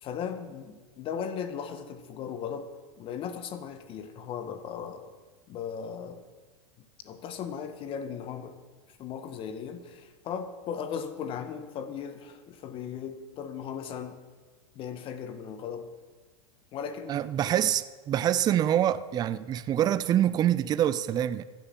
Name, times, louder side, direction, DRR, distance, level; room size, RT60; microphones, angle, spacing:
voice 1, 0.0-2.7 3.0-5.0 5.5-6.2 7.0-8.6 9.0-14.2 14.7-15.9 16.7-17.1, left 7 dB, 35° left, 1.6 m, -37 dB
voice 2, 17.1-21.4, right 11 dB, 25° right, 0.6 m, -25 dB
15.0 x 10.5 x 7.4 m
hypercardioid pair, 125°, 15 cm